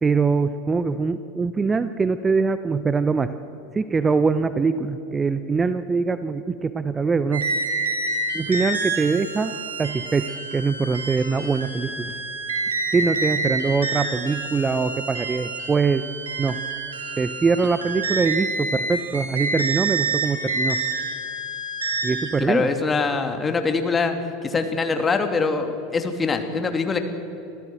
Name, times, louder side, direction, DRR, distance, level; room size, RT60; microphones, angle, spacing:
voice 1, 0.0-3.3 3.7-7.5 8.3-12.1 12.9-16.1 16.4-16.6 17.2-20.8 22.0-22.7, right 4 dB, 20° right, 13 dB, 0.8 m, -23 dB
sound 1, 7.3-22.3, right 3 dB, 85° right, 3.5 m, -28 dB
voice 2, 22.4-24.1 24.4-27.0, left 4 dB, 20° left, 6 dB, 2.4 m, -23 dB
25.5 x 15.0 x 7.8 m, 2.8 s
figure-of-eight pair, 85°, 0 cm